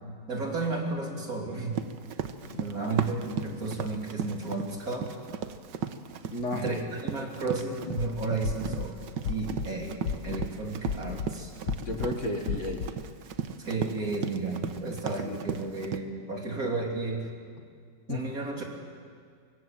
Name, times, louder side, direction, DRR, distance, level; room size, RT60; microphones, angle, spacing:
voice 1, 0.3-1.8 2.6-5.1 6.5-9.0 9.3-11.5 13.6-17.3 18.1-18.6, right 3 dB, 55° right, 0 dB, 3.7 m, -33 dB
Run, 1.7-16.0, right 7 dB, 85° right, 1.7 m, -36 dB
voice 2, 2.4-3.1 6.3-6.6 11.8-12.9 15.2-15.4 18.1-18.2, left 2 dB, 45° left, 3 dB, 2.2 m, -34 dB
sound 1, 7.8-8.1 8.4-8.9 9.2-9.7 10.0-10.5 10.9-11.3 11.7-12.1 12.5-12.9, left 7 dB, 65° left, 1.6 m, -32 dB
24.5 x 24.0 x 7.6 m, 2.1 s
omnidirectional pair, 1.9 m